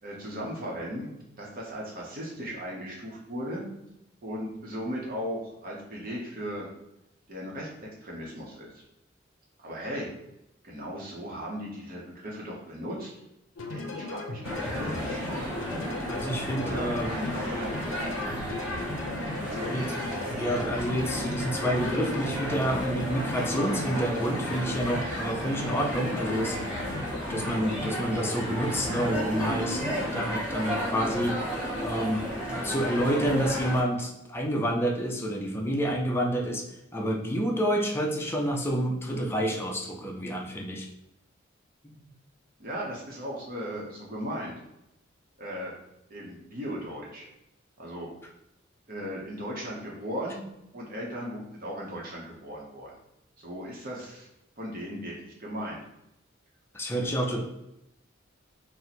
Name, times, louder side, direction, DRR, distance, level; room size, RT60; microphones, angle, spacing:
voice 1, 0.0-1.1 1.4-3.7 4.2-6.7 7.3-8.8 9.6-10.1 10.6-13.1 13.7-15.2 16.6-17.8 19.3-19.8 42.6-44.5 45.4-45.7 46.1-47.3 47.8-48.1 48.9-50.5 50.7-53.0 53.4-54.3 54.6-55.8 56.9-57.0, equal, 45° right, -3 dB, 0.8 m, -37 dB
sound 1, 13.6-30.3, left 2 dB, 75° left, 0.5 m, -38 dB
sound 2, 14.4-33.8, equal, 5° right, 1.0 m, -33 dB
voice 2, 16.1-17.2 19.2-19.4 19.7-19.9 20.4-26.6 27.3-31.4 31.8-32.2 32.5-36.6 36.9-40.9 41.8-42.0 56.7-57.4, equal, 10° left, 1 dB, 0.4 m, -29 dB
2.8 x 2.1 x 4.0 m, 0.85 s
head